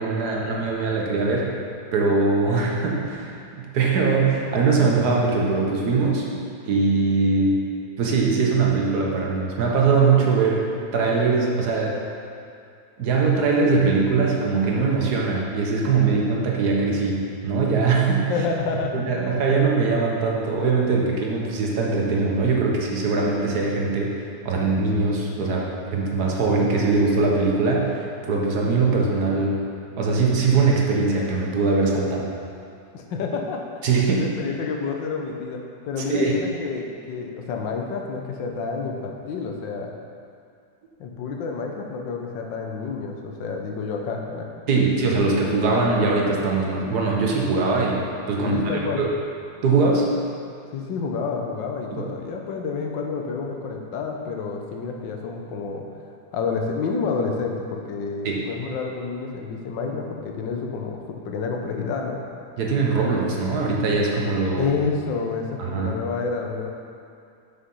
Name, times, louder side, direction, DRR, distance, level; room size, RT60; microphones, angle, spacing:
voice 1, 0.0-1.5 1.9-6.3 6.6-7.6 8.0-12.0 13.0-18.3 18.9-29.6 30.0-32.3 33.8-34.3 36.1-36.3 44.7-48.0 48.3-49.1 49.6-50.1 51.9-52.0 58.2-58.4 62.6-64.7 65.6-65.9, right 4 dB, 65° right, -2 dB, 1.5 m, -21 dB
voice 2, 18.3-19.0 32.9-33.6 34.2-35.6 35.8-39.9 41.0-44.5 48.4-49.0 50.7-62.2 64.6-66.7, left 4 dB, 85° left, 2 dB, 1.5 m, -29 dB
6.5 x 5.9 x 5.4 m, 2.3 s
omnidirectional pair, 2.0 m